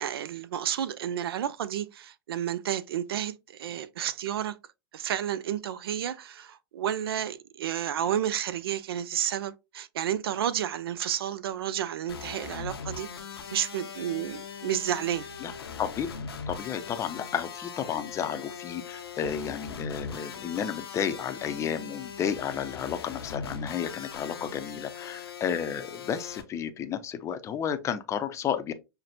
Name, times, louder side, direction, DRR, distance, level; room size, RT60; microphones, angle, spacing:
voice 1, 0.0-4.6 4.9-13.1 13.5-15.3, right 10 dB, 75° right, 0.4 m, -31 dB
sound 1, 12.1-26.4, left 6 dB, 90° left, 0.6 m, -40 dB
voice 2, 16.5-28.7, left 8 dB, 25° left, 0.5 m, -32 dB
5.6 x 2.1 x 2.6 m
hypercardioid pair, 110°, 13 cm